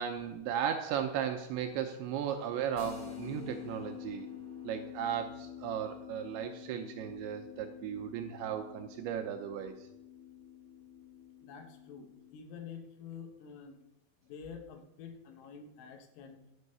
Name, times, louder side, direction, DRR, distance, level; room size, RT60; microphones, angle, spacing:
voice 1, 0.0-4.3 4.6-9.7, right 9 dB, 85° right, 5 dB, 2.7 m, -36 dB
sound 1, 2.7-12.4, left 8 dB, 70° left, 0.5 m, -48 dB
voice 2, 11.4-13.8 14.2-16.4, left 6 dB, 90° left, 6 dB, 4.0 m, -48 dB
12.0 x 5.5 x 8.0 m, 0.84 s
omnidirectional pair, 5.8 m